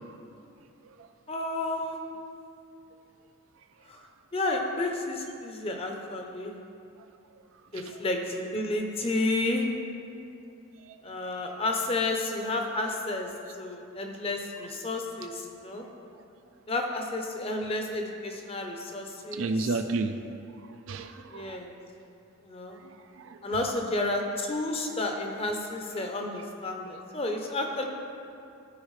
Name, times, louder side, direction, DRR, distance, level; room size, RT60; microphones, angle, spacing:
voice 1, 1.3-2.0 3.9-4.0 4.3-6.5 7.7-9.7 11.0-15.9 16.7-19.7 21.3-21.7 22.4-22.8 23.4-27.9, left 2 dB, 25° left, 2 dB, 0.7 m, -31 dB
voice 2, 19.3-20.2 20.9-21.6 22.8-23.4, right 3 dB, 70° right, 8 dB, 0.4 m, -33 dB
13.5 x 4.8 x 3.2 m, 2.6 s
head